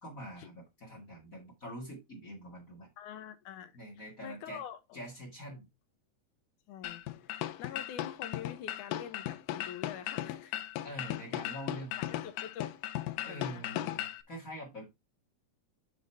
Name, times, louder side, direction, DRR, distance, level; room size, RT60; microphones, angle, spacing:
voice 1, 0.0-2.9 3.7-4.6 4.9-5.7 10.8-12.1 13.2-14.0 14.3-14.9, equal, 40° left, 1.2 m, -44 dB
voice 2, 3.0-5.0 6.7-10.6 12.0-12.7 13.3-13.9, left 9 dB, 70° left, 2.0 m, -46 dB
sound 1, 6.8-14.2, left 13 dB, 85° left, 1.8 m, -37 dB
9.3 x 3.9 x 4.3 m
omnidirectional pair, 4.5 m